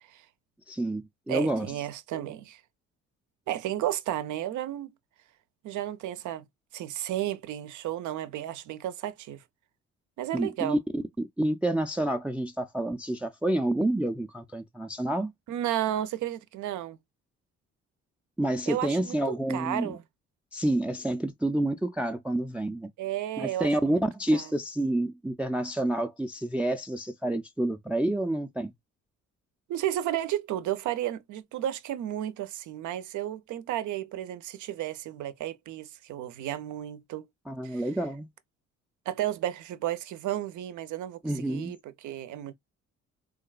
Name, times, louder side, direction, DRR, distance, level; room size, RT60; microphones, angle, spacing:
voice 1, 0.7-1.7 10.3-15.3 18.4-20.0 20.5-22.9 23.4-28.7 37.5-38.3 41.2-41.7, right 1 dB, 5° right, 0.3 m, -28 dB
voice 2, 1.3-2.6 3.5-4.9 5.6-6.4 6.7-9.4 10.2-10.8 15.5-17.0 18.7-19.2 19.5-20.0 23.0-24.0 24.3-24.5 29.7-37.2 37.6-37.8 39.1-41.8 42.0-42.5, right 12 dB, 75° right, 0.5 m, -33 dB
3.7 x 2.3 x 2.3 m
cardioid pair, 90°, 30 cm